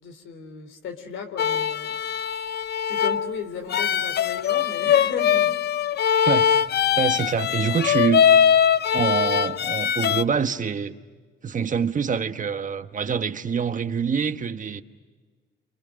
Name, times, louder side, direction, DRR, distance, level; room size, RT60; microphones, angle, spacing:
voice 1, 0.0-2.0 2.9-5.6, left 6 dB, 80° left, 7 dB, 3.5 m, -35 dB
sound 1, 1.4-10.2, left 8 dB, 55° left, 0.7 m, -21 dB
voice 2, 6.1-6.5 7.0-8.2 8.9-10.9 11.4-14.8, right 6 dB, 40° right, 9 dB, 1.3 m, -25 dB
29.0 x 28.0 x 6.4 m, 1.4 s
cardioid pair, 90°, 20 cm